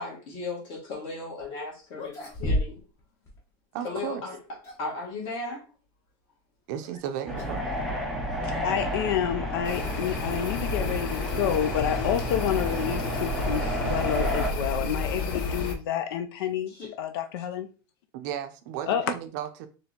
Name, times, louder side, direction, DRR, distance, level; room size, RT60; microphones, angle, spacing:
voice 1, 0.0-2.8 3.8-4.4 4.8-5.7 16.7-16.9, left 3 dB, 40° left, 1.8 m, -36 dB
sound 1, 1.4-1.5 1.9-3.0 3.3-3.4 4.2-5.0 6.8-7.0 7.4-7.7 8.0-8.1 8.8-8.9 10.7-12.8, left 1 dB, 20° left, 0.9 m, -34 dB
voice 2, 3.7-4.2 6.7-7.7 18.1-19.7, right 10 dB, 50° right, 0.5 m, -34 dB
sound 2, 7.3-14.5, equal, ahead, 0.5 m, -31 dB
voice 3, 8.4-17.7 18.9-19.0, left 9 dB, 75° left, 0.4 m, -29 dB
sound 3, 9.6-15.7, left 3 dB, 55° left, 0.8 m, -32 dB
4.3 x 3.1 x 2.8 m
supercardioid pair, 170°, 13 cm